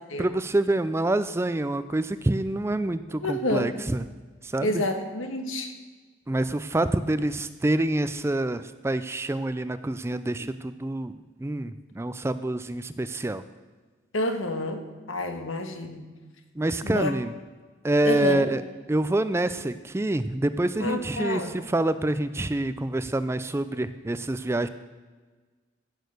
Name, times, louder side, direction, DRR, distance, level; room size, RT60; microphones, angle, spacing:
voice 1, 0.2-4.1 4.4-4.8 6.3-13.4 16.6-17.3 17.8-18.6 18.9-24.7, right 1 dB, 15° right, 12 dB, 0.3 m, -27 dB
voice 2, 3.2-3.7 4.6-5.7 14.1-14.8 15.1-16.0 16.8-17.1 18.0-18.4 20.8-21.5, left 1 dB, 75° left, 6 dB, 1.5 m, -28 dB
16.0 x 6.5 x 6.5 m, 1.4 s
head